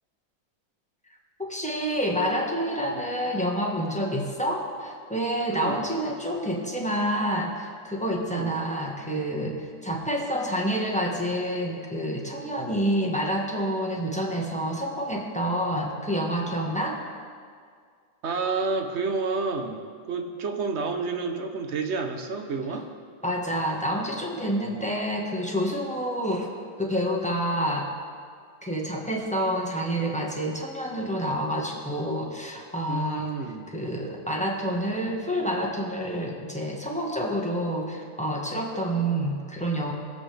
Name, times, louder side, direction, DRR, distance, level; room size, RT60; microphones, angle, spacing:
voice 1, 1.4-17.0 23.2-26.5 26.8-27.9 28.6-33.3 33.7-39.9, equal, 5° left, -2 dB, 1.0 m, -28 dB
voice 2, 5.5-5.8 8.2-8.5 18.2-19.8 20.1-22.9 32.9-33.7, right 4 dB, 55° right, 5 dB, 0.8 m, -29 dB
20.5 x 7.7 x 3.4 m, 2.1 s
omnidirectional pair, 2.1 m